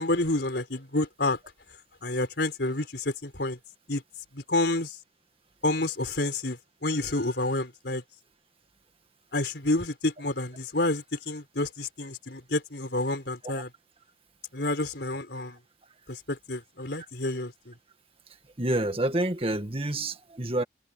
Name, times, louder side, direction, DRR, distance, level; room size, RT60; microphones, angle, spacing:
voice 1, 0.0-1.4 2.0-3.6 3.9-4.0 4.3-5.0 5.6-8.0 9.3-13.7 14.5-15.6 16.1-17.7, left 2 dB, 70° left, 4.2 m, -29 dB
voice 2, 18.6-20.6, right 1 dB, 30° right, 1.8 m, -28 dB
head